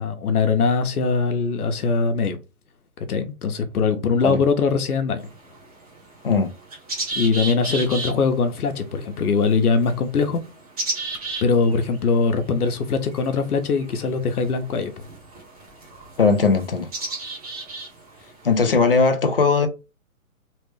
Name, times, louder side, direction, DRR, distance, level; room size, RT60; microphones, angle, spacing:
voice 1, 0.0-2.4 3.1-5.2 7.1-10.4 11.4-14.9 18.6-18.7, left 5 dB, 80° left, 0.9 m, -21 dB
sound 1, 5.2-19.1, right 2 dB, 25° right, 0.8 m, -36 dB
voice 2, 16.2-16.9 18.4-19.7, left 4 dB, 40° left, 0.4 m, -18 dB
3.2 x 2.1 x 3.2 m
hypercardioid pair, 170°, 44 cm